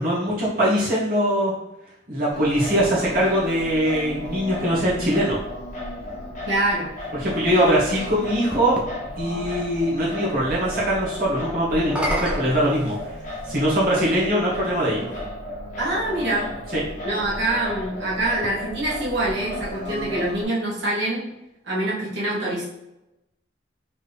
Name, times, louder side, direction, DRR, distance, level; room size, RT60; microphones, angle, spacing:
voice 1, 0.0-1.5 2.1-5.4 7.2-8.8 9.2-13.1 13.4-15.1 16.7-16.8, equal, 50° right, -7 dB, 1.2 m, -22 dB
Singing, 2.3-20.4, left 1 dB, 40° left, 1.1 m, -34 dB
voice 2, 6.5-6.9 15.8-16.5 17.0-21.2 21.6-22.7, right 1 dB, 75° right, -6 dB, 1.4 m, -25 dB
sound 1, 7.1-8.9 11.7-13.5 14.5-14.6 18.3-19.8, equal, 5° right, 0.5 m, -34 dB
4.2 x 3.2 x 3.4 m, 0.89 s
head